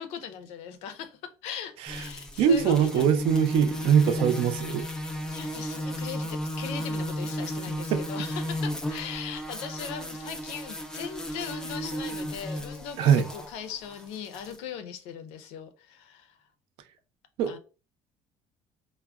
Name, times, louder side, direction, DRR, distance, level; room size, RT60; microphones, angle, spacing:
voice 1, 0.0-3.1 5.3-16.4 17.5-17.6, left 7 dB, 85° left, 0.5 m, -39 dB
sound 1, 1.9-14.6, equal, 5° left, 0.3 m, -34 dB
voice 2, 2.4-4.8 7.9-8.0 13.0-13.2 17.4-17.6, right 8 dB, 65° right, 0.4 m, -22 dB
3.4 x 2.0 x 2.3 m
cardioid pair, 165°, 10 cm